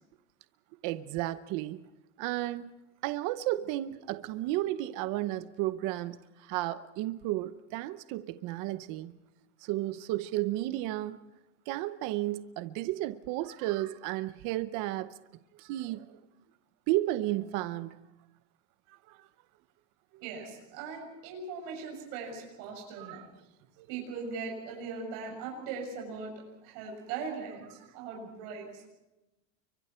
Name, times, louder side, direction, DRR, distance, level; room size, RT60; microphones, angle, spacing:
voice 1, 0.8-1.8 2.2-2.7 3.0-9.1 9.6-11.2 11.7-15.1 15.6-16.2 16.9-18.0 18.9-19.2 23.0-23.2 23.8-23.9, right 16 dB, 40° right, 13 dB, 0.8 m, -33 dB
voice 2, 20.2-23.2 23.9-26.3 26.6-28.9, right 5 dB, 60° right, 0 dB, 7.2 m, -40 dB
29.5 x 24.0 x 4.4 m, 0.99 s
supercardioid pair, 155°, 46 cm